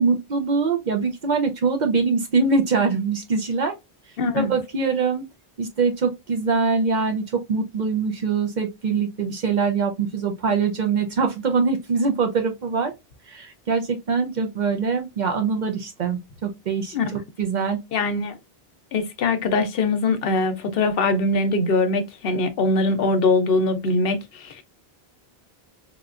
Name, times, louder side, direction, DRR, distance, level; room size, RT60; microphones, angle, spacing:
voice 1, 0.0-3.7 4.3-5.3 5.6-12.9 13.3-17.8, right 5 dB, 55° right, 0.6 m, -23 dB
voice 2, 4.2-4.5 16.9-17.1 17.9-18.4 18.9-24.6, left 3 dB, 70° left, 0.8 m, -22 dB
3.5 x 2.3 x 2.4 m
omnidirectional pair, 1.0 m